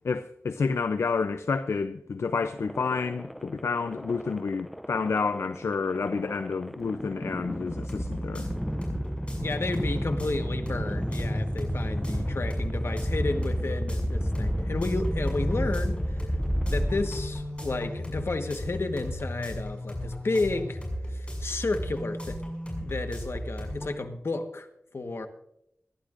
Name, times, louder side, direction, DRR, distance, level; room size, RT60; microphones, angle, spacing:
voice 1, 0.0-8.5, left 4 dB, 80° left, 0.5 m, -29 dB
sound 1, 2.6-17.7, equal, ahead, 0.5 m, -32 dB
sound 2, 7.7-23.9, equal, 25° left, 6.1 m, -34 dB
voice 2, 9.4-16.3 16.7-20.8 21.1-22.4 22.8-24.7 24.9-25.3, left 3 dB, 65° left, 1.3 m, -32 dB
25.0 x 11.5 x 2.5 m
cardioid pair, 45°, 5 cm